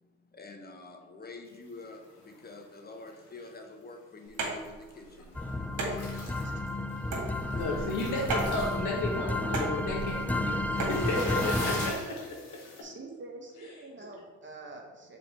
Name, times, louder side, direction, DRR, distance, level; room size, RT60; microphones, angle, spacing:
voice 1, 0.3-5.4, left 3 dB, 30° left, 3 dB, 1.1 m, -47 dB
sound 1, 1.7-2.7 3.0-3.6 4.2-4.7 4.9-5.5 5.9-12.8, left 2 dB, 85° left, 1.9 m, -43 dB
sound 2, 4.3-11.0, right 3 dB, 65° right, 1.9 m, -37 dB
sound 3, 5.3-11.9, left 1 dB, 5° left, 0.4 m, -32 dB
voice 2, 6.4-7.4 7.9-8.0 12.8-15.2, right 3 dB, 35° right, 1 dB, 1.4 m, -47 dB
voice 3, 7.5-10.6 10.9-12.2, left 2 dB, 65° left, -2 dB, 1.9 m, -33 dB
5.6 x 4.3 x 4.5 m, 1.3 s
hypercardioid pair, 60°, 32 cm